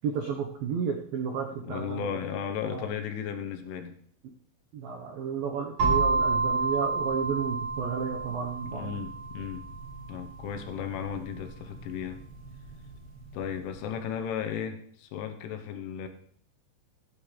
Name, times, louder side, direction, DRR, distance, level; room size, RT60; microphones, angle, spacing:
voice 1, 0.0-2.1 2.6-2.9 4.7-8.9, right 7 dB, 80° right, 1 dB, 2.0 m, -32 dB
voice 2, 1.5-4.0 8.6-9.6 10.1-12.2 13.3-16.1, left 8 dB, 80° left, 7 dB, 3.4 m, -35 dB
sound 1, 5.8-13.6, right 4 dB, 45° right, 4.7 m, -31 dB
16.0 x 11.0 x 3.3 m, 0.63 s
omnidirectional pair, 5.7 m